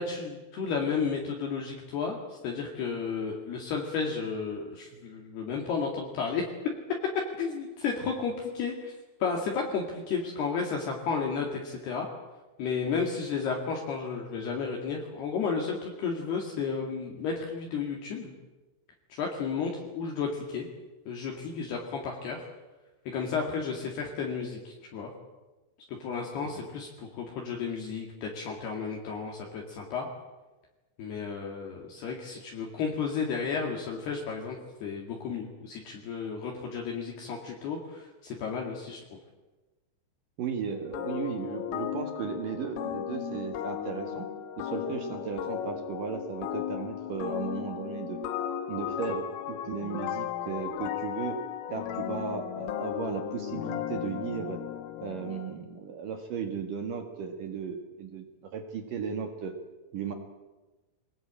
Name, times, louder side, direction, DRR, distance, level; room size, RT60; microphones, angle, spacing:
voice 1, 0.0-6.7 7.1-8.9 9.2-12.1 12.6-18.3 19.2-20.7 21.1-22.5 23.1-25.1 25.9-30.1 31.0-39.0, left 5 dB, 60° left, 0 dB, 3.9 m, -33 dB
voice 2, 40.4-44.3 44.6-48.2 48.7-51.4 51.7-54.6 55.0-59.5 59.9-60.1, right 7 dB, 60° right, 5 dB, 2.6 m, -36 dB
sound 1, 40.9-55.6, left 10 dB, 90° left, 3.8 m, -35 dB
24.5 x 19.5 x 8.8 m, 1.2 s
omnidirectional pair, 5.6 m